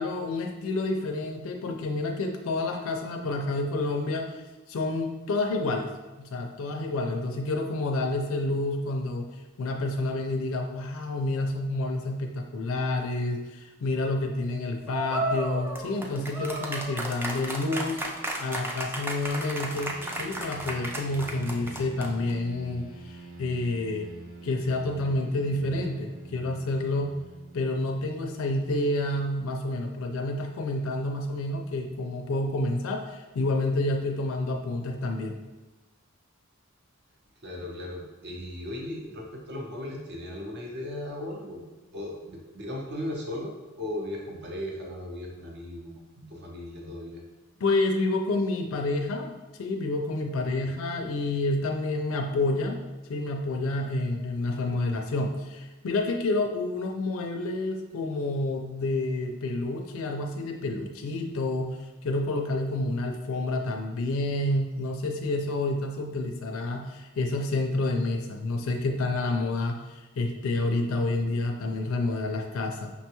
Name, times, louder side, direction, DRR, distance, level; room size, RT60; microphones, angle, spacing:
voice 1, 0.0-5.9 6.2-18.0 18.4-24.1 24.4-27.1 27.5-35.4 47.6-52.8 53.1-72.9, left 2 dB, 70° left, 2 dB, 0.4 m, -29 dB
sound 1, 14.9-22.3, right 1 dB, 10° right, 0.3 m, -33 dB
sound 2, 19.5-29.2, right 2 dB, 75° right, 1.1 m, -46 dB
voice 2, 37.4-41.6 41.9-47.2 50.6-50.7, left 1 dB, 55° right, -1 dB, 0.7 m, -37 dB
5.6 x 2.2 x 2.9 m, 1.1 s
head